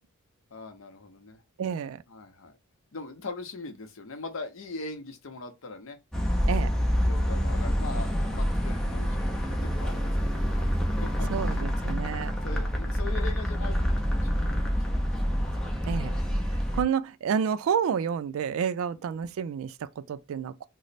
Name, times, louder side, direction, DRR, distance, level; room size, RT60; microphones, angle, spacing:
voice 1, 0.5-1.4 2.1-2.5 2.9-6.0 7.0-10.5 10.9-11.7 12.4-15.1 18.9-19.0, left 3 dB, 70° left, 0.7 m, -41 dB
voice 2, 1.6-2.0 6.5-6.7 11.3-12.3 15.9-16.2 16.7-20.7, right 7 dB, 70° right, 0.3 m, -29 dB
sound 1, 6.1-16.8, equal, 5° left, 0.4 m, -27 dB
3.1 x 2.0 x 4.0 m
head